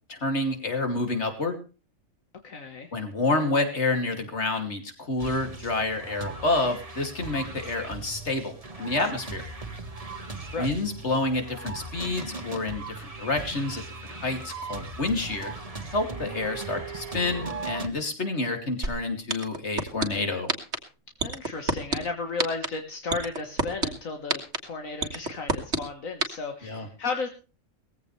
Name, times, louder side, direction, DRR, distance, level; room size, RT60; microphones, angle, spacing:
voice 1, 0.1-1.6 2.9-9.5 10.6-15.5 15.9-20.5 26.6-26.9, left 2 dB, 55° left, 5 dB, 3.0 m, -28 dB
voice 2, 2.4-2.9 10.5-10.7 21.2-27.3, left 4 dB, 75° left, 4 dB, 1.9 m, -34 dB
sound 1, 5.2-17.9, right 3 dB, 25° right, 1.7 m, -38 dB
sound 2, 18.8-18.9 19.3-20.0 20.5-20.8 21.2-22.0 22.4-22.7 23.1-23.9 24.3-24.6 25.0-25.8 26.2-26.3, right 3 dB, 55° right, 2.2 m, -24 dB
19.0 x 15.5 x 3.3 m, 0.34 s
omnidirectional pair, 1.4 m